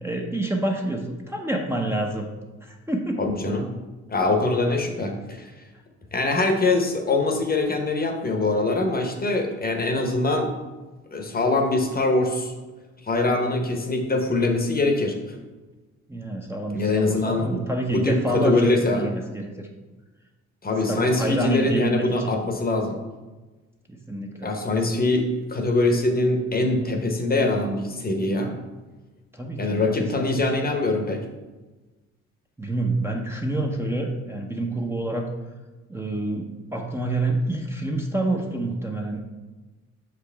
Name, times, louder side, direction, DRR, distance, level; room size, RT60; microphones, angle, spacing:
voice 1, 0.0-2.3 2.6-3.2 16.1-19.7 20.9-22.4 23.9-24.5 29.3-30.6 32.6-35.3 35.9-39.2, right 1 dB, 10° right, 0 dB, 0.8 m, -28 dB
voice 2, 3.2-3.7 4.1-5.5 6.1-10.5 11.1-12.5 13.0-15.2 16.7-17.6 17.9-19.0 20.6-23.0 24.4-28.5 29.6-31.2, left 2 dB, 30° left, 4 dB, 1.0 m, -23 dB
6.5 x 5.0 x 3.4 m, 1.2 s
cardioid pair, 90°, 30 cm